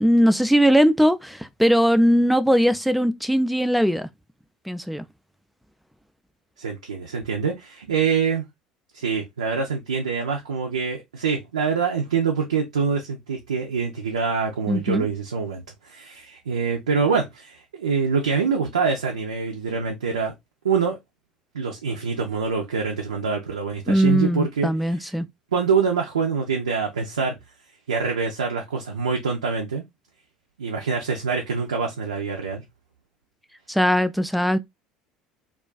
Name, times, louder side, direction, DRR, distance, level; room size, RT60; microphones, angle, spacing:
voice 1, 0.0-4.1 4.7-5.0 14.7-15.1 23.9-25.3 33.7-34.6, equal, ahead, 0.3 m, -20 dB
voice 2, 6.6-8.4 8.9-20.3 20.6-21.0 21.5-25.1 25.5-27.3 27.9-29.8 30.6-32.7, right 5 dB, 85° right, 0.4 m, -25 dB
2.4 x 2.3 x 2.2 m
hypercardioid pair, 65°, 4 cm